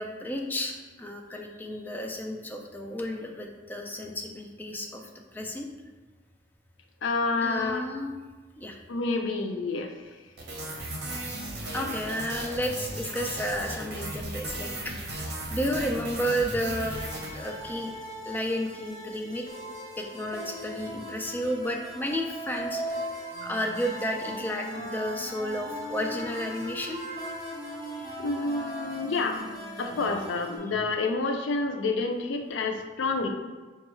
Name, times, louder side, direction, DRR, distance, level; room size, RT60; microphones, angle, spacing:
voice 1, 0.0-5.0 5.3-5.7 7.4-8.1 8.6-8.8 11.1-11.3 11.7-19.4 20.0-23.1 23.4-27.0 27.8-28.2, equal, 10° left, 1 dB, 0.3 m, -32 dB
voice 2, 7.0-7.9 8.9-10.2 28.2-29.4 29.8-33.3, left 3 dB, 80° left, 4 dB, 0.4 m, -28 dB
sound 1, 10.4-17.9, right 1 dB, 60° right, 0.8 m, -36 dB
sound 2, 16.9-30.6, right 1 dB, 15° right, 1.1 m, -40 dB
Wind instrument woodwind instrument, 23.3-30.8, equal, 45° left, 0.9 m, -42 dB
5.2 x 2.3 x 3.0 m, 1.3 s
head